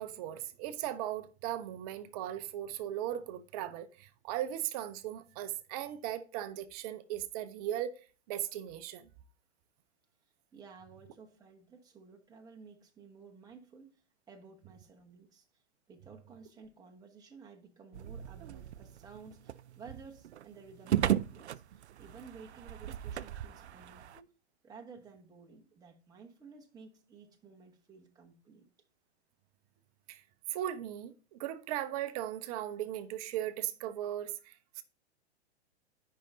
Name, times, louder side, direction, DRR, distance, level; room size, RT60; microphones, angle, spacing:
voice 1, 0.0-8.0 8.3-9.1 30.1-30.2 30.5-34.8, right 12 dB, 35° right, 0.7 m, -38 dB
voice 2, 10.5-14.0 14.3-15.4 15.9-24.3 24.6-28.7, right 5 dB, 10° right, 1.1 m, -54 dB
sound 1, 17.9-24.2, right 11 dB, 75° right, 0.5 m, -36 dB
13.5 x 5.6 x 2.6 m
hypercardioid pair, 115°, 34 cm